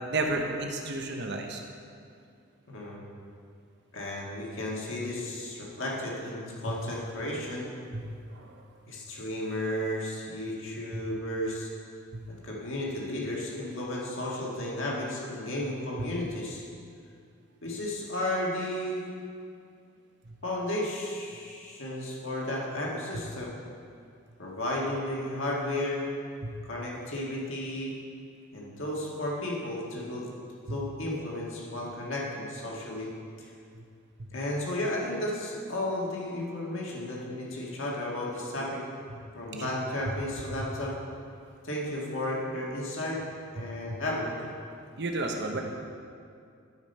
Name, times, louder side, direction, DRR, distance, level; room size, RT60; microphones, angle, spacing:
voice 1, 0.1-1.6 6.7-6.8 7.9-8.0 8.3-8.6 10.9-11.0 12.1-12.2 16.0-16.1 26.4-26.5 30.7-30.8 39.5-39.7 43.6-43.7 45.0-45.6, right 2 dB, 50° right, 2 dB, 0.9 m, -32 dB
voice 2, 2.7-3.0 3.9-7.7 8.9-11.7 12.3-16.6 17.6-19.1 20.4-23.6 24.4-26.1 26.6-28.0 28.5-30.3 30.7-33.1 33.4-33.5 34.3-38.8 39.3-40.9 41.6-43.2 43.5-44.5, left 1 dB, 60° left, -4 dB, 1.8 m, -33 dB
12.0 x 5.1 x 5.5 m, 2.4 s
head